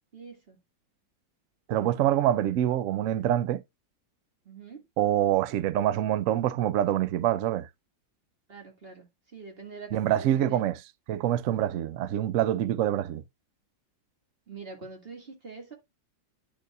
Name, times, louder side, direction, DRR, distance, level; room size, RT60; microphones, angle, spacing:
voice 1, 0.1-0.6 4.4-4.8 8.5-10.7 14.5-15.7, right 4 dB, 30° right, 1.9 m, -45 dB
voice 2, 1.7-3.6 5.0-7.7 9.9-10.7 11.1-13.2, right 12 dB, 90° right, 0.6 m, -25 dB
10.0 x 6.7 x 2.3 m
omnidirectional pair, 2.0 m